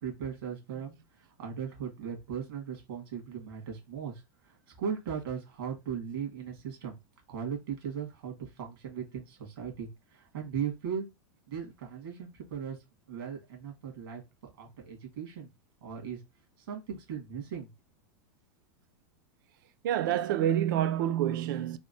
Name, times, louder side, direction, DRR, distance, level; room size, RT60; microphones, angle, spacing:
voice 1, 0.0-7.0 7.3-11.1 11.5-12.8 13.1-14.2 14.6-15.5 15.8-16.2 16.7-17.7, right 7 dB, 75° right, 1.7 m, -38 dB
voice 2, 19.8-21.8, right 11 dB, 55° right, 0.4 m, -27 dB
3.5 x 2.1 x 2.6 m
supercardioid pair, 170°, 12 cm